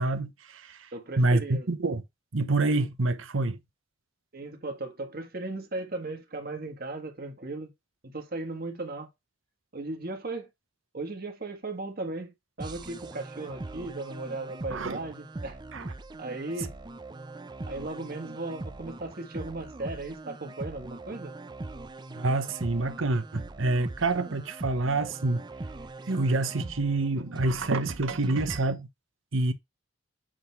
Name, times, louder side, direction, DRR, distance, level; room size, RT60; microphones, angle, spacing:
voice 1, 0.0-0.9 1.2-1.4 1.7-2.0 2.3-3.6 14.7-15.0 15.7-15.9 22.1-25.4 26.1-28.9 29.3-29.5, right 2 dB, 75° right, 1.0 m, -27 dB
voice 2, 0.9-1.7 4.3-7.7 8.0-9.1 9.7-10.5 10.9-15.6 16.2-16.8 17.6-21.3, right 2 dB, 45° right, 1.6 m, -36 dB
sound 1, 12.6-28.6, right 2 dB, 20° right, 0.5 m, -41 dB
7.8 x 3.8 x 4.5 m
head